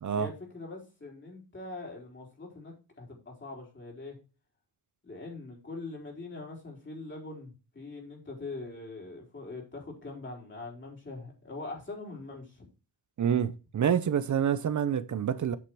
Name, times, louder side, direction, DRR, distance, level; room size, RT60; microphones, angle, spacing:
voice 1, 0.1-4.2 5.0-12.7, left 3 dB, 30° left, 4.2 m, -42 dB
voice 2, 13.2-15.6, right 8 dB, 45° right, 0.7 m, -27 dB
8.8 x 6.5 x 4.7 m
wide cardioid pair, 145°, 41 cm